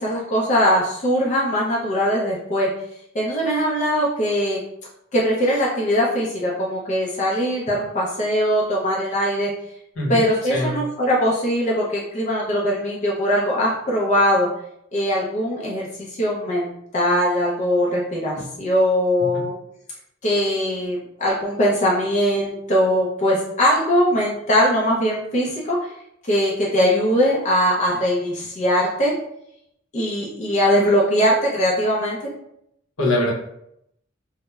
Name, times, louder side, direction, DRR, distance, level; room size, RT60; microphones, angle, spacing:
voice 1, 0.0-2.7 3.1-4.6 5.1-9.5 10.1-14.5 14.9-19.6 20.2-25.9 26.3-29.1 29.9-32.2, equal, 35° left, -4 dB, 0.5 m, -21 dB
voice 2, 10.0-10.8 33.0-33.3, left 1 dB, 70° left, -3 dB, 0.8 m, -23 dB
2.9 x 2.0 x 2.3 m, 0.76 s
head